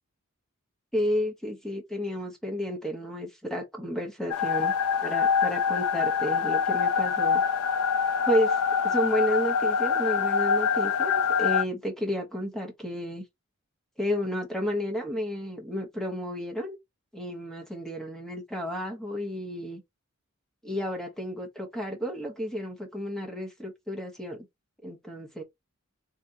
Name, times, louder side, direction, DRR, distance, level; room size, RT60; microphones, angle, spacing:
voice 1, 0.9-4.7 5.0-7.4 8.3-13.2 14.0-16.8 17.1-19.8 20.6-24.4 24.8-25.4, equal, ahead, 0.9 m, -31 dB
sound 1, 4.3-11.6, left 6 dB, 90° left, 0.4 m, -25 dB
3.6 x 3.3 x 2.8 m
head